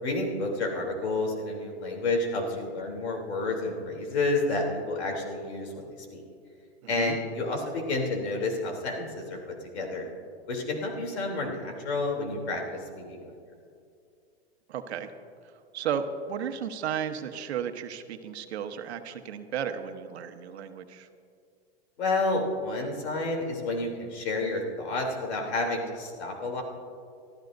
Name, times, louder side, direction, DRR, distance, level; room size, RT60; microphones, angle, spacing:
voice 1, 0.0-6.2 6.9-9.4 9.7-10.0 10.5-13.3 22.0-26.6, left 2 dB, 80° left, 1 dB, 3.3 m, -30 dB
voice 2, 6.8-7.2 14.7-15.1 15.4-21.1, right 8 dB, 80° right, 8 dB, 1.2 m, -34 dB
26.5 x 13.0 x 2.6 m, 2.4 s
hypercardioid pair, 140°, 32 cm